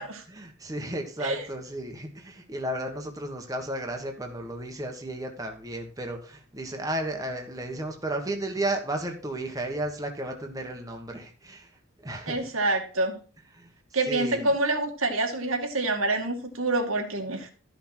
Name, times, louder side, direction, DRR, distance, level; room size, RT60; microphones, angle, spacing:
voice 1, 0.3-11.7 12.0-12.4 13.5-13.7 14.1-14.5, right 1 dB, 15° right, 3 dB, 1.3 m, -33 dB
voice 2, 12.3-13.2 13.9-17.5, right 2 dB, 85° right, 3 dB, 2.2 m, -27 dB
13.0 x 5.9 x 4.4 m, 0.38 s
head